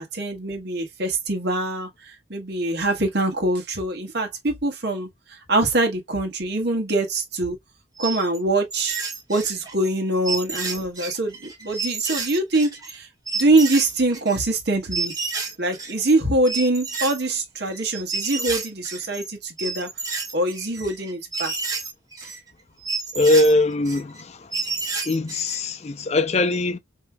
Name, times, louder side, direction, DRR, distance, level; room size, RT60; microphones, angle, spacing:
voice 1, 0.0-5.1 5.5-7.6 8.0-9.0 9.3-13.1 13.3-15.1 15.6-19.9 20.3-21.5 22.2-22.3, right 2 dB, 60° right, 1.3 m, -24 dB
sound 1, 8.0-8.4 8.7-9.9 10.2-13.0 13.3-14.4 14.9-16.1 16.5-19.3 19.6-22.4 22.8-24.2 24.5-25.6, right 4 dB, 20° right, 1.3 m, -30 dB
voice 2, 23.1-26.8, left 2 dB, 35° left, 0.5 m, -22 dB
5.4 x 2.9 x 2.2 m
head